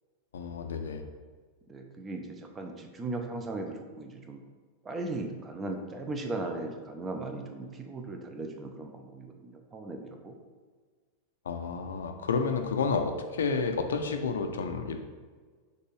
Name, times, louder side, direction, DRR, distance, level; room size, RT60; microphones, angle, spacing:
voice 1, 0.3-1.1 11.5-15.0, left 5 dB, 65° left, 5 dB, 0.5 m, -30 dB
voice 2, 1.7-4.4 4.8-10.4, right 2 dB, 20° right, 4 dB, 0.6 m, -37 dB
6.3 x 2.6 x 3.1 m, 1.5 s
figure-of-eight pair, 90°, 0 cm